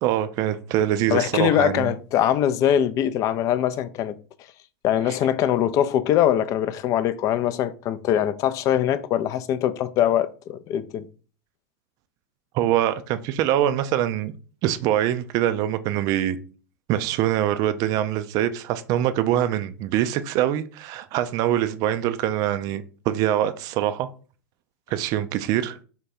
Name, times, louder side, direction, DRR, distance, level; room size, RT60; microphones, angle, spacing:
voice 1, 0.0-1.9 5.1-5.2 12.5-14.3 14.6-16.4 16.9-24.1 24.9-25.8, right 12 dB, 45° right, 0.4 m, -24 dB
voice 2, 1.1-4.2 4.8-11.1, left 10 dB, 40° left, 0.4 m, -22 dB
3.7 x 2.2 x 4.2 m
hypercardioid pair, 95°, 9 cm